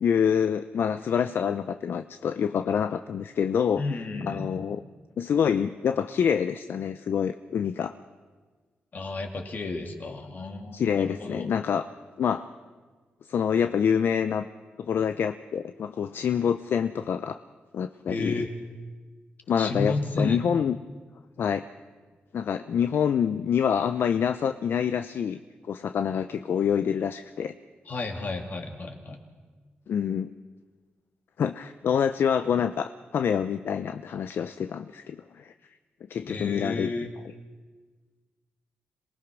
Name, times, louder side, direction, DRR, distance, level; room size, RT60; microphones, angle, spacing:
voice 1, 0.0-3.8 4.2-4.8 5.2-7.9 10.7-11.9 12.2-12.5 13.3-14.5 14.8-17.4 17.7-18.4 19.5-20.8 21.4-21.6 22.3-25.4 25.7-27.5 29.9-30.3 31.4-35.5 36.1-36.9, left 7 dB, 70° left, 10 dB, 0.6 m, -26 dB
voice 2, 3.8-4.5 8.9-11.5 18.1-18.5 19.6-20.4 27.9-29.2 36.2-37.1, left 3 dB, 50° left, 4 dB, 2.8 m, -32 dB
26.5 x 19.0 x 6.2 m, 1.4 s
cardioid pair, 90°, 4 cm